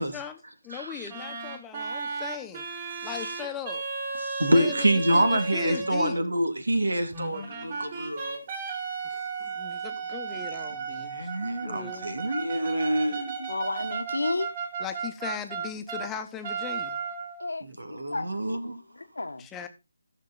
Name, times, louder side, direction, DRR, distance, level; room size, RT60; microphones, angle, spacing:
voice 1, 0.0-2.6 3.0-3.8 4.5-6.2 9.1-11.3 11.6-12.1 14.8-17.0 19.4-19.7, left 9 dB, 10° left, 1.1 m, -38 dB
voice 2, 0.7-1.1 4.2-8.4 11.0-13.5 17.6-18.8, right 1 dB, 85° right, 2.3 m, -27 dB
sound 1, 1.1-6.2 7.1-16.1 16.4-17.5, right 5 dB, 35° right, 3.4 m, -34 dB
voice 3, 13.5-14.5 17.4-17.6 17.9-19.5, left 2 dB, 80° left, 1.4 m, -32 dB
14.5 x 6.6 x 4.0 m
figure-of-eight pair, 155°, 0 cm